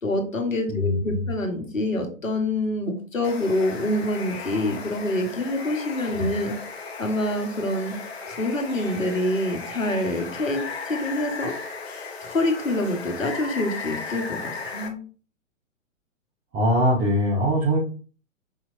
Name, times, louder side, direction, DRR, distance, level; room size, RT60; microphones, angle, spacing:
voice 1, 0.0-6.5 7.0-8.0 8.3-11.5 12.3-14.4 14.6-15.0, left 1 dB, 80° left, 4 dB, 1.1 m, -26 dB
voice 2, 0.7-1.3 6.2-6.3 16.5-17.8, equal, 25° right, -5 dB, 1.1 m, -22 dB
Water, 3.2-14.9, left 4 dB, 50° left, 0.9 m, -36 dB
4.8 x 2.9 x 2.5 m, 0.38 s
figure-of-eight pair, 115°, 39 cm